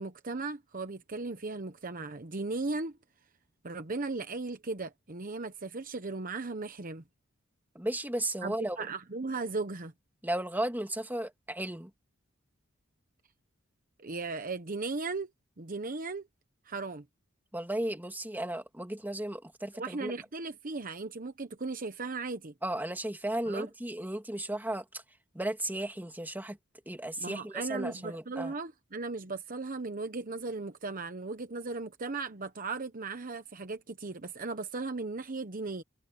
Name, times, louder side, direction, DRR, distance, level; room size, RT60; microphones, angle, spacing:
voice 1, 0.0-3.0 3.6-7.0 8.4-9.9 14.0-15.3 15.6-16.3 16.6-17.0 19.7-22.5 23.5-23.7 27.2-35.8, right 3 dB, 40° right, 1.0 m, -37 dB
voice 2, 7.7-8.8 10.2-11.9 17.5-20.1 22.6-24.8 25.3-26.6 26.9-28.5, right 1 dB, 10° right, 2.3 m, -34 dB
head